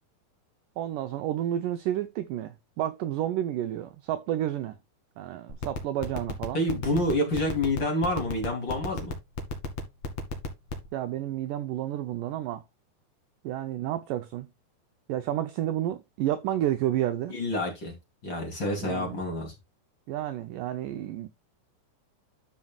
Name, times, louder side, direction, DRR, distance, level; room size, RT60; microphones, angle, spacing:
voice 1, 0.8-4.8 5.2-6.6 10.9-12.6 13.4-14.5 15.1-17.4 18.8-19.2 20.1-21.3, right 12 dB, 85° right, 1.9 m, -30 dB
sound 1, 5.5-10.9, left 4 dB, 45° left, 2.8 m, -31 dB
voice 2, 6.5-9.1 17.3-17.9 18.2-19.5, left 1 dB, 30° left, 3.0 m, -28 dB
13.0 x 5.3 x 2.3 m
omnidirectional pair, 4.5 m